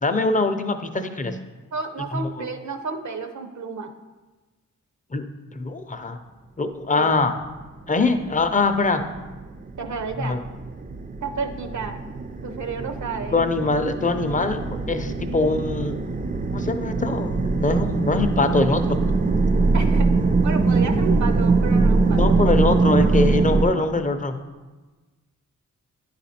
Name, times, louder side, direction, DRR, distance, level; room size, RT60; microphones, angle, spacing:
voice 1, 0.0-1.4 2.1-2.3 5.1-5.2 5.5-6.2 6.6-7.3 7.9-9.0 10.2-10.4 13.3-14.6 14.9-15.9 16.5-19.0 22.1-24.4, left 3 dB, 25° left, 8 dB, 0.6 m, -23 dB
voice 2, 1.7-3.9 6.9-7.1 9.8-10.4 11.2-12.0 12.4-13.4 17.1-17.2 19.7-20.1 20.4-22.3, right 4 dB, 65° right, 7 dB, 0.7 m, -31 dB
sound 1, 8.2-23.6, right 3 dB, 30° right, 0.4 m, -22 dB
9.8 x 4.1 x 4.3 m, 1.2 s
wide cardioid pair, 70°, 31 cm